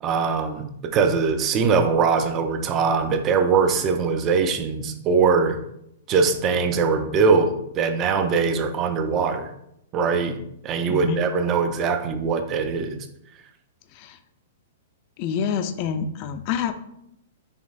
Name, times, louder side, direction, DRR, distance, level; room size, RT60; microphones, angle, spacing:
voice 1, 0.0-5.6 6.1-9.5 9.9-13.0, right 5 dB, 30° right, 8 dB, 0.5 m, -22 dB
voice 2, 15.2-16.7, left 7 dB, 45° left, 9 dB, 0.4 m, -27 dB
5.1 x 3.2 x 2.5 m, 0.78 s
hypercardioid pair, 130°, 0 cm